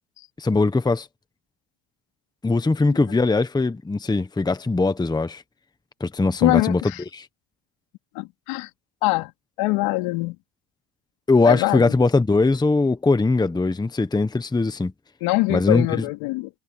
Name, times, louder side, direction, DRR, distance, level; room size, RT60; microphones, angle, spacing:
voice 1, 0.4-1.1 2.4-5.4 6.0-6.9 7.2-7.3 11.3-14.9 15.5-15.9, left 3 dB, 10° left, 1.1 m, -20 dB
voice 2, 6.4-7.0 8.1-8.7 9.0-9.3 9.6-10.4 11.4-11.9 15.2-16.5, left 22 dB, 75° left, 3.0 m, -23 dB
cardioid pair, 115°, 49 cm